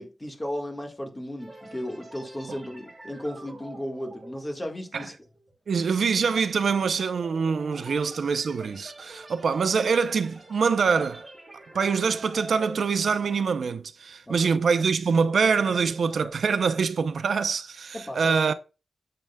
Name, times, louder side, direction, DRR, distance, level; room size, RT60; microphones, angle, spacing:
voice 1, 0.0-5.1 7.8-7.9 14.3-14.5 17.9-18.5, left 1 dB, 15° left, 1.5 m, -35 dB
sound 1, 1.4-13.9 14.2-14.5 15.0-16.3, right 1 dB, 15° right, 2.9 m, -47 dB
voice 2, 5.7-11.3 11.7-18.5, right 5 dB, 70° right, 0.5 m, -24 dB
9.1 x 7.6 x 2.2 m
wide cardioid pair, 165°, 0 cm